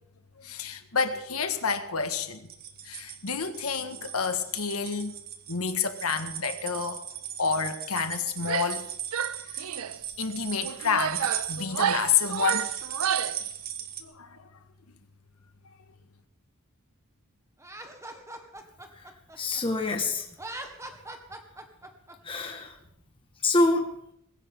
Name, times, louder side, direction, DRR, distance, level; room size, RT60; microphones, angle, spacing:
voice 1, 0.4-2.5 2.8-5.2 5.5-7.0 7.4-8.9 9.5-9.6 10.2-12.7 14.0-14.5, left 6 dB, 90° left, 8 dB, 1.7 m, -29 dB
sound 1, 2.4-14.0, right 9 dB, 45° right, 1.6 m, -37 dB
Female speech woman speaking / Yell, 8.4-8.8 9.1-10.0 10.6-13.4, right 8 dB, 75° right, 0.5 m, -30 dB
Laughter, 17.6-19.9 20.3-22.1, right 1 dB, 15° right, 1.7 m, -42 dB
voice 2, 18.9-20.3 22.2-22.8 23.4-23.9, left 2 dB, 25° left, 2 dB, 1.7 m, -26 dB
20.5 x 16.5 x 3.8 m, 0.74 s
head